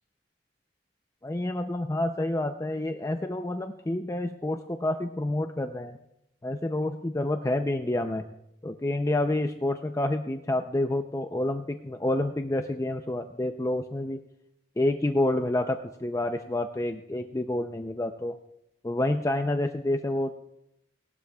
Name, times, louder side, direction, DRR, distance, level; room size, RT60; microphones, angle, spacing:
voice 1, 1.2-6.0 6.4-8.3 8.6-14.2 14.8-18.4 18.8-20.3, left 1 dB, 15° left, 6 dB, 0.5 m, -28 dB
19.5 x 12.0 x 2.3 m, 0.81 s
head